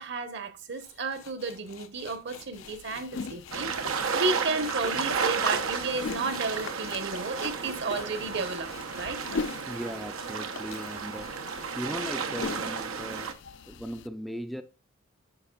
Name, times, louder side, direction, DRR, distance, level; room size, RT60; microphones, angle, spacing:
voice 1, 0.0-9.2 13.5-13.6, right 3 dB, 55° right, 1.1 m, -33 dB
sound 1, 0.7-10.2 10.4-12.1, left 6 dB, 75° left, 0.9 m, -48 dB
sound 2, 2.5-14.1, left 4 dB, 60° left, 0.4 m, -42 dB
sound 3, 3.5-13.3, right 5 dB, 90° right, 0.9 m, -32 dB
voice 2, 9.7-11.4 11.8-13.4 13.7-14.6, equal, ahead, 0.4 m, -38 dB
9.9 x 5.8 x 2.4 m
head